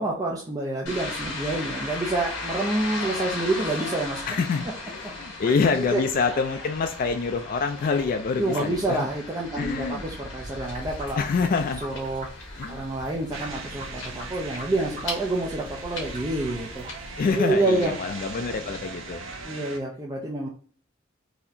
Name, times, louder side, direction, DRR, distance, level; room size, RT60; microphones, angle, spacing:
voice 1, 0.0-4.2 5.8-6.0 8.4-11.2 11.8-12.3 12.7-16.8 17.4-17.9 19.4-20.5, right 2 dB, 20° right, -3 dB, 0.6 m, -28 dB
sound 1, 0.9-19.4, left 2 dB, 75° left, 1.5 m, -37 dB
voice 2, 4.3-9.1 9.6-10.0 11.1-11.8 12.6-12.9 17.2-19.2, left 5 dB, 45° left, 6 dB, 0.3 m, -26 dB
sound 2, 10.6-17.3, equal, 40° right, 1.2 m, -43 dB
sound 3, 13.3-19.8, right 4 dB, 75° right, 0.7 m, -40 dB
4.1 x 2.8 x 2.6 m, 0.43 s
head